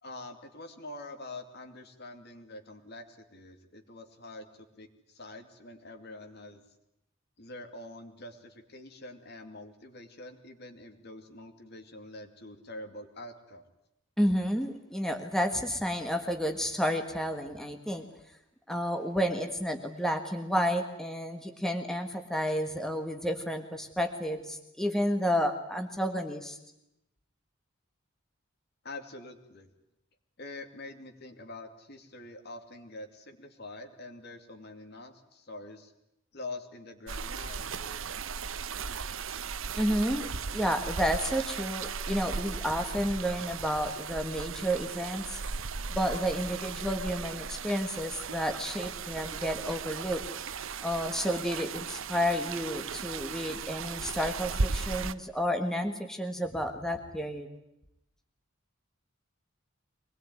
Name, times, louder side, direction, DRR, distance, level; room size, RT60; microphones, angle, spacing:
voice 1, 0.0-6.6 7.4-13.6 28.8-29.7 30.4-35.9 36.3-38.0, left 2 dB, 50° left, 7 dB, 2.7 m, -45 dB
voice 2, 14.2-18.1 18.7-26.6 39.8-45.4 45.9-50.2 50.8-57.5, equal, ahead, 5 dB, 1.6 m, -31 dB
sound 1, 37.1-55.1, right 5 dB, 75° right, 1.0 m, -36 dB
24.0 x 20.5 x 9.5 m, 0.84 s
head